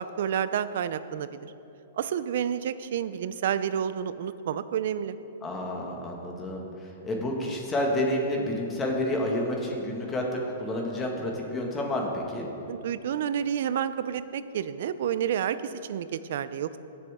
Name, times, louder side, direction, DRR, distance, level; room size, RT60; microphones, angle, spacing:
voice 1, 0.0-1.5 1.9-5.2 12.7-16.8, right 9 dB, 65° right, 14 dB, 0.5 m, -30 dB
voice 2, 5.4-12.5, left 1 dB, 15° left, 0 dB, 1.7 m, -29 dB
18.0 x 7.0 x 3.6 m, 2.8 s
hypercardioid pair, 145°, 0 cm